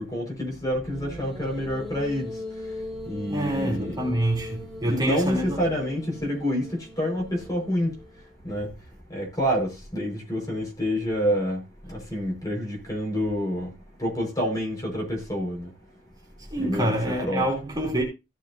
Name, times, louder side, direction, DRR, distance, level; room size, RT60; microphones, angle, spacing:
voice 1, 0.0-2.3 3.1-4.0 4.8-7.9 8.4-8.7 9.1-11.6 11.9-13.7 14.0-15.7 16.6-17.5, equal, 20° left, 5.5 m, -28 dB
sound 1, 0.9-8.3, left 1 dB, ahead, 2.8 m, -40 dB
voice 2, 3.2-5.6 16.5-18.0, right 1 dB, 20° right, 3.5 m, -26 dB
17.0 x 6.8 x 2.8 m
head